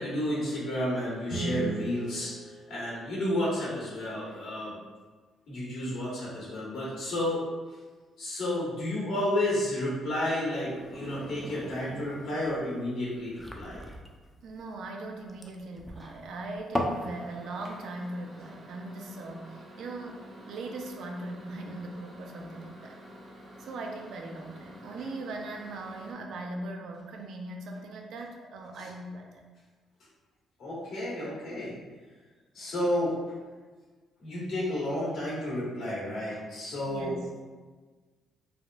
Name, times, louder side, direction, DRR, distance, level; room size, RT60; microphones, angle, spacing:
voice 1, 0.0-4.7 5.5-7.4 8.2-13.8 30.6-31.8 32.5-33.1 34.2-37.1, left 1 dB, 80° left, -7 dB, 1.3 m, -31 dB
Guitar, 1.3-3.9, right 3 dB, 35° left, 0.7 m, -37 dB
sound 1, 10.6-17.1, left 1 dB, 5° left, 0.4 m, -38 dB
voice 2, 14.4-23.0 23.6-29.4 36.9-37.3, right 2 dB, 75° right, 2 dB, 0.4 m, -40 dB
Microwave oven, 16.9-26.1, equal, 45° right, 0.7 m, -49 dB
3.5 x 2.4 x 2.3 m, 1.4 s
cardioid pair, 90°, 0 cm